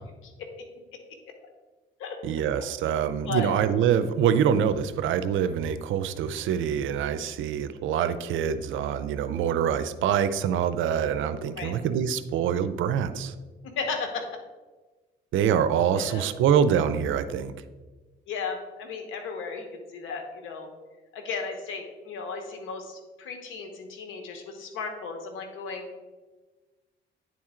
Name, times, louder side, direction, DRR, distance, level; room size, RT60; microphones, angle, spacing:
voice 1, 2.2-13.3 15.3-17.5, right 8 dB, 80° right, 12 dB, 0.5 m, -25 dB
voice 2, 13.8-14.3 15.9-16.3 18.3-20.7 21.1-25.9, left 4 dB, 90° left, 4 dB, 1.1 m, -35 dB
9.4 x 4.3 x 3.7 m, 1.3 s
cardioid pair, 90°, 20 cm